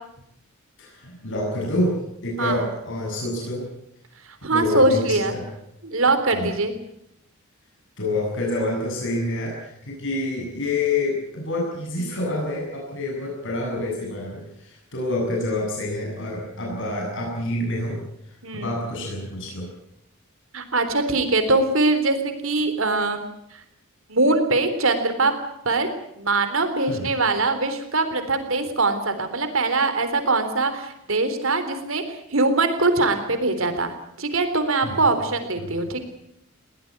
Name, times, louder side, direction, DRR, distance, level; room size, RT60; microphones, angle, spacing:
voice 1, 0.8-3.7 4.5-5.4 6.3-6.5 8.0-19.7 26.9-27.1 34.8-35.1 35.6-35.7, left 2 dB, 60° left, -2 dB, 7.7 m, -27 dB
voice 2, 4.4-5.4 5.8-6.7 18.4-18.8 20.5-23.2 24.1-25.3 25.7-25.9 26.2-36.0, right 3 dB, 65° right, 9 dB, 3.7 m, -22 dB
21.0 x 18.0 x 9.6 m, 0.78 s
head